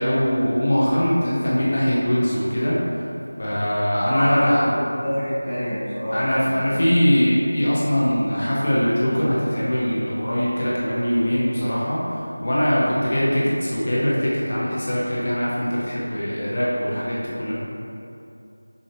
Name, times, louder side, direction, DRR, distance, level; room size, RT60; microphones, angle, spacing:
voice 1, 0.0-3.0 3.4-4.6 6.1-17.5, equal, 35° left, -7 dB, 0.7 m, -22 dB
voice 2, 4.0-6.9, equal, ahead, -24 dB, 0.8 m, -27 dB
6.2 x 2.8 x 3.0 m, 2.6 s
figure-of-eight pair, 175°, 0 cm